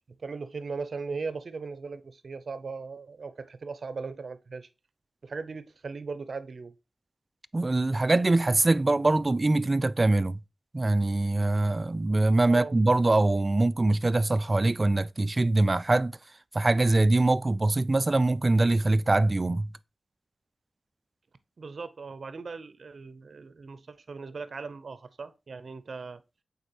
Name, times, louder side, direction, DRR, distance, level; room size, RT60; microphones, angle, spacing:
voice 1, 0.2-4.7 5.2-6.7 12.5-12.8 21.6-26.2, right 4 dB, 60° right, 0.7 m, -38 dB
voice 2, 7.5-10.4 10.7-16.1 16.5-19.7, right 2 dB, 30° right, 0.3 m, -23 dB
8.1 x 4.2 x 3.0 m
wide cardioid pair, 110°, 0 cm